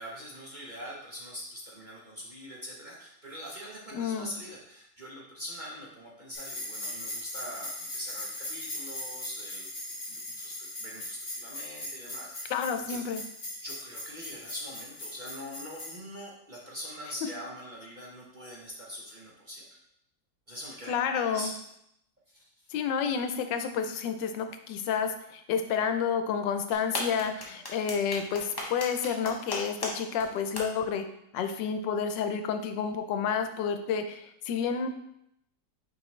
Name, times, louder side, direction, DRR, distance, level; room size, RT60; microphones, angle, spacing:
voice 1, 0.0-9.7 10.1-13.0 13.5-19.7 20.5-21.5 22.3-22.4 27.5-27.8, equal, 35° right, -4 dB, 0.8 m, -43 dB
voice 2, 3.9-4.4 12.5-13.2 20.9-21.5 22.7-31.1 31.3-34.9, left 6 dB, 90° left, 8 dB, 1.3 m, -30 dB
sound 1, 6.3-16.0, left 1 dB, 50° left, 2.7 m, -39 dB
sound 2, 26.7-29.9 30.2-30.3 30.6-30.7, left 1 dB, 20° left, 0.8 m, -34 dB
6.0 x 4.9 x 3.2 m, 0.76 s
omnidirectional pair, 1.9 m